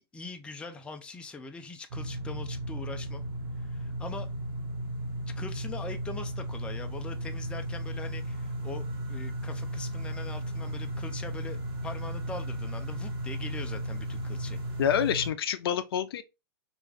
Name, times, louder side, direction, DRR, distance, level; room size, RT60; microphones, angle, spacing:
voice 1, 0.0-3.2 3.6-4.3 5.4-14.6, left 3 dB, 10° left, 0.4 m, -42 dB
sound 1, 1.9-15.3, right 1 dB, 65° right, 1.1 m, -35 dB
voice 2, 14.8-16.2, left 9 dB, 70° left, 0.4 m, -27 dB
3.1 x 2.5 x 3.4 m
hypercardioid pair, 120°, 13 cm